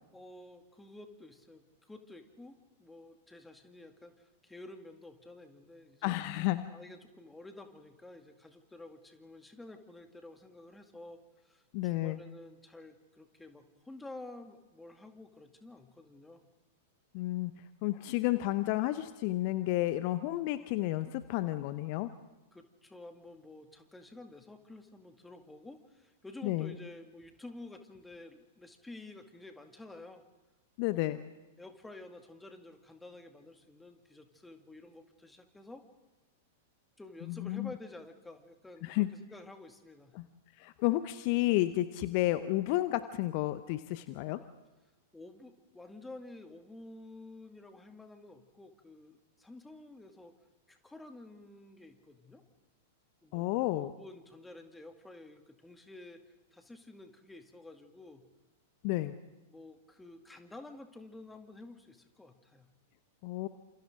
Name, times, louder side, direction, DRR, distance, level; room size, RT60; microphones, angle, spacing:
voice 1, 0.1-6.2 6.7-16.4 22.5-30.2 30.9-31.0 31.6-35.8 37.0-40.2 45.1-50.3 50.7-52.4 53.2-58.2 59.5-62.7, left 2 dB, 5° left, 6 dB, 2.2 m, -51 dB
voice 2, 6.0-6.7 11.7-12.2 17.1-17.5 17.8-22.1 26.4-26.7 30.8-31.2 37.2-37.7 38.8-39.1 40.1-40.3 40.6-44.4 53.3-53.9 58.8-59.1 63.2-63.5, left 16 dB, 45° left, 12 dB, 0.9 m, -31 dB
29.0 x 28.0 x 3.8 m, 1.1 s
figure-of-eight pair, 95°, 0 cm